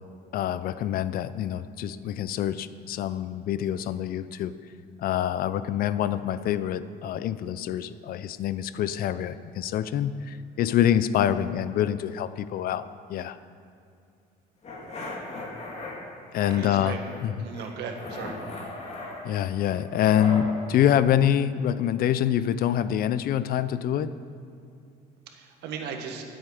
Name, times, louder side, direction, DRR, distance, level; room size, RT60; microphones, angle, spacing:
voice 1, 0.3-4.5 5.0-13.4 16.3-17.5 19.2-24.1, left 10 dB, 60° left, 14 dB, 0.5 m, -26 dB
sound 1, 14.6-15.9 16.3-17.2 17.5-20.5, left 2 dB, 40° left, 2.6 m, -38 dB
voice 2, 16.5-17.0 17.4-18.4 25.3-26.2, right 6 dB, 80° right, 3 dB, 1.5 m, -36 dB
19.5 x 8.0 x 4.9 m, 2.5 s
cardioid pair, 110°, 17 cm